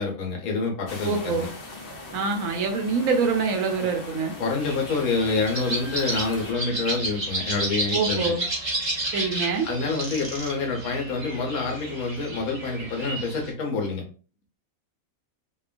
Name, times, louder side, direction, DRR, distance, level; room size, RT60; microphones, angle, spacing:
voice 1, 0.0-1.5 4.4-8.3 9.6-14.0, left 3 dB, 80° left, 1 dB, 1.2 m, -27 dB
sound 1, 0.9-6.5, left 2 dB, 50° left, 0.7 m, -40 dB
voice 2, 1.0-1.5 2.1-4.3 7.9-8.4 9.1-9.7, right 4 dB, 70° right, 3 dB, 1.0 m, -25 dB
sound 2, 4.6-13.5, right 2 dB, 25° right, 0.6 m, -32 dB
2.9 x 2.2 x 2.4 m, 0.37 s
omnidirectional pair, 1.5 m